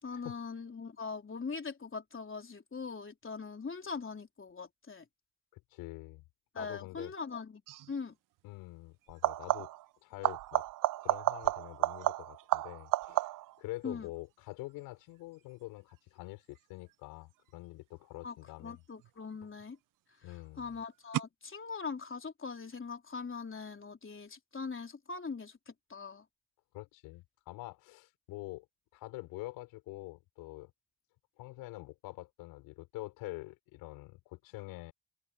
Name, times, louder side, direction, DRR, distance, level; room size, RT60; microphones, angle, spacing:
voice 1, 0.0-5.1 6.5-7.6 7.9-8.1 13.8-14.1 18.2-19.8 20.6-26.2, left 5 dB, 35° left, 3.8 m, -41 dB
voice 2, 5.5-6.2 6.6-7.1 8.4-9.7 10.0-10.7 11.0-13.3 13.6-18.8 20.2-20.8 26.7-28.7 28.9-30.7 31.4-34.9, left 20 dB, 85° left, 5.9 m, -46 dB
sound 1, 7.7-7.9 9.1-9.9 10.2-13.6 19.0-19.6 21.1-21.2, right 16 dB, 65° right, 0.6 m, -32 dB
hypercardioid pair, 50°, 35 cm